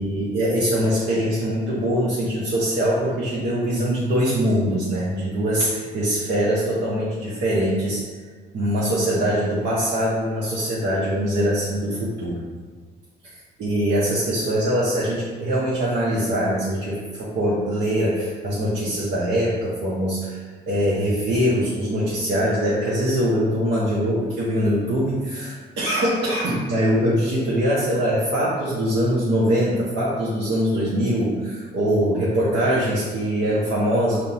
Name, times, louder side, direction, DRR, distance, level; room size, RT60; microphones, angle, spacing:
voice 1, 0.0-8.1 8.5-12.4 13.2-34.2, equal, 65° right, -7 dB, 0.8 m, -23 dB
5.3 x 2.1 x 2.8 m, 1.5 s
cardioid pair, 85°, 19 cm